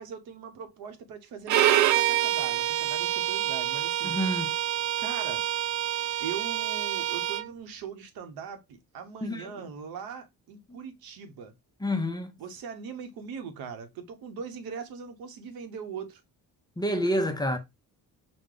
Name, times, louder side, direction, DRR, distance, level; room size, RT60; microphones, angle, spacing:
voice 1, 0.0-4.2 5.0-5.4 6.2-11.5 12.4-16.2, right 6 dB, 85° right, 0.9 m, -40 dB
Bowed string instrument, 1.5-7.5, right 12 dB, 55° right, 0.4 m, -27 dB
voice 2, 4.0-4.5 9.2-9.5 11.8-12.3 16.8-17.6, equal, 10° left, 0.6 m, -28 dB
4.9 x 2.2 x 3.7 m
cardioid pair, 140°, 36 cm